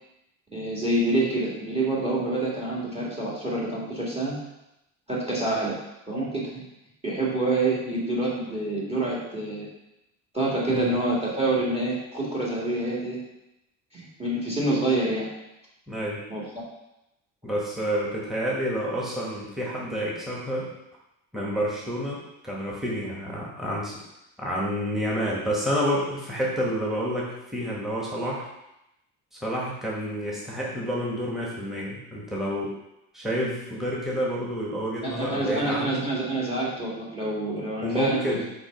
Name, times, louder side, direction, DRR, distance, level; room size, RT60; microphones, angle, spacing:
voice 1, 0.5-4.4 5.1-5.8 6.1-6.5 7.0-9.7 10.3-13.2 13.9-15.3 16.3-16.4 35.0-38.2, right 2 dB, 15° right, -5 dB, 2.1 m, -27 dB
voice 2, 15.9-16.2 17.4-20.7 21.3-24.0 24.4-28.5 29.4-32.7 33.1-36.0 37.6-38.4, equal, ahead, -5 dB, 1.5 m, -29 dB
5.0 x 4.3 x 5.3 m, 0.90 s
cardioid pair, 100°, 35 cm